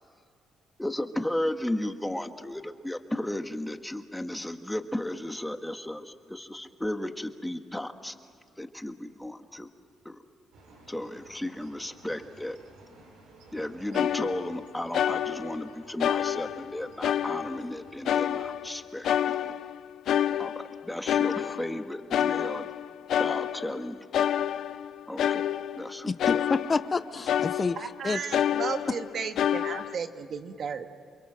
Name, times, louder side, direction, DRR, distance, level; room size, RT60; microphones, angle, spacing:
voice 1, 0.8-8.1 8.6-9.7 10.0-10.2 10.9-12.6 13.5-19.5 20.4-22.7 23.2-24.3 25.1-25.4 25.8-26.4, left 1 dB, 5° left, 7 dB, 1.6 m, -34 dB
sound 1, 10.5-18.6, right 2 dB, 90° right, 7.2 m, -54 dB
sound 2, 13.9-14.7 14.9-15.7 16.0-17.7 18.0-18.8 19.0-21.8 22.1-23.8 24.1-27.0 27.3-28.0 28.3-30.0, left 10 dB, 70° left, 0.6 m, -28 dB
voice 2, 26.1-28.2, left 4 dB, 35° left, 13 dB, 0.8 m, -29 dB
voice 3, 27.8-30.9, right 6 dB, 55° right, 7 dB, 1.7 m, -34 dB
29.5 x 22.0 x 7.6 m, 2.3 s
cardioid pair, 90°, 0 cm